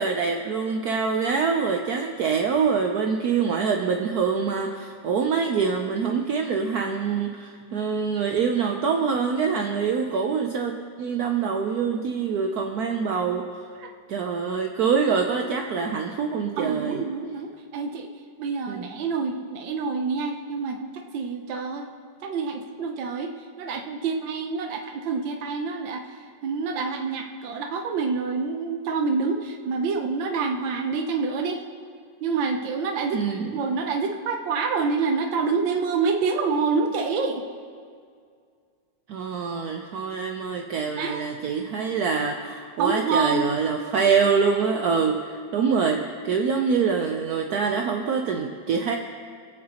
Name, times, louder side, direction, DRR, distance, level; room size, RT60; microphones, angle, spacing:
voice 1, 0.0-13.6 14.1-17.0 18.7-19.0 33.1-33.6 39.1-49.0, right 5 dB, 65° right, 3 dB, 1.1 m, -25 dB
voice 2, 16.6-18.1 18.4-21.9 22.2-26.2 26.4-31.6 32.2-37.5 41.0-41.2 42.8-43.5, right 4 dB, 90° right, 3 dB, 1.5 m, -27 dB
25.5 x 8.5 x 2.9 m, 2.2 s
omnidirectional pair, 2.0 m